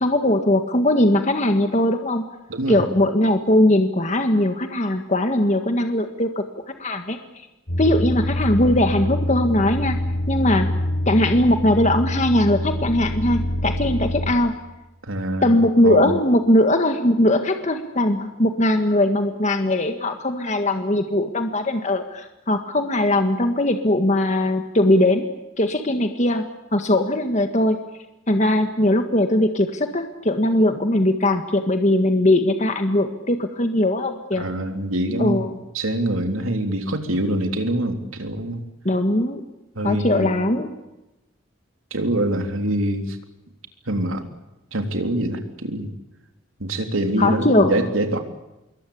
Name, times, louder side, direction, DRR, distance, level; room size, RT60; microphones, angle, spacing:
voice 1, 0.0-2.2 2.7-6.4 6.8-7.2 7.8-10.0 10.3-10.7 11.1-14.6 15.4-25.3 25.6-27.8 28.3-34.5 35.2-35.5 38.9-39.4 39.8-40.7 47.2-47.8, left 1 dB, 35° left, 6 dB, 1.7 m, -20 dB
voice 2, 2.5-2.9 15.0-15.5 15.8-16.1 34.4-35.4 35.7-38.6 39.8-40.4 41.9-43.2 43.9-44.2 44.7-45.9 46.6-48.2, right 1 dB, 85° right, 5 dB, 3.4 m, -24 dB
sound 1, 7.7-14.3, left 1 dB, 65° left, 5.4 m, -25 dB
26.0 x 22.5 x 8.6 m, 0.95 s
head